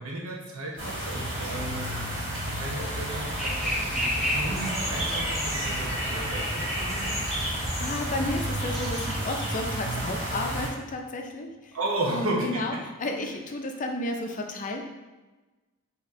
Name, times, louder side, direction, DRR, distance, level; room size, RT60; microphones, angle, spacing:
voice 1, 0.0-7.2 11.7-12.6, right 1 dB, 70° right, -3 dB, 0.9 m, -34 dB
sound 1, 0.8-10.7, right 1 dB, 50° right, 1.4 m, -31 dB
sound 2, 1.1-9.3, left 4 dB, 25° right, 0.4 m, -46 dB
sound 3, 3.2-9.2, equal, ahead, 0.8 m, -33 dB
voice 2, 7.5-11.8 12.1-14.8, left 2 dB, 35° left, 3 dB, 0.5 m, -32 dB
4.1 x 2.9 x 3.6 m, 1.2 s
head